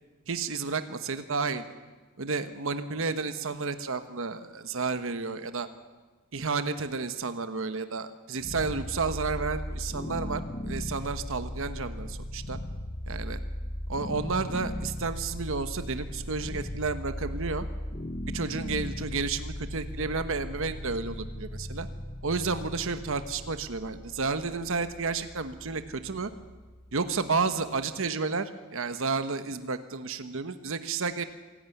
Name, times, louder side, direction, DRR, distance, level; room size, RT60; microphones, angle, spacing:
voice 1, 0.3-1.7 2.2-5.7 6.3-12.6 13.1-13.4 13.9-17.7 18.2-21.9 22.2-26.3 26.9-31.2, right 4 dB, 65° right, 10 dB, 1.1 m, -31 dB
sound 1, 8.4-27.4, left 1 dB, 30° left, 0.9 m, -38 dB
26.0 x 11.5 x 9.3 m, 1.3 s
head